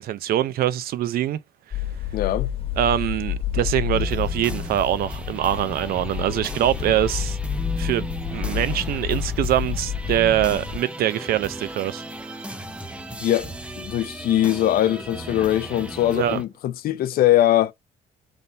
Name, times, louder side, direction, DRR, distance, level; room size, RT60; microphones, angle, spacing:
voice 1, 0.0-1.4 2.8-7.4 7.8-12.4 16.1-16.4, right 12 dB, 60° right, 0.5 m, -24 dB
sound 1, 1.7-10.8, left 9 dB, 35° left, 1.2 m, -29 dB
voice 2, 2.1-2.5 13.2-17.7, left 13 dB, 60° left, 0.7 m, -21 dB
sound 2, 3.9-16.4, right 1 dB, 5° right, 0.7 m, -36 dB
3.7 x 2.7 x 4.1 m
cardioid pair, 110°, 17 cm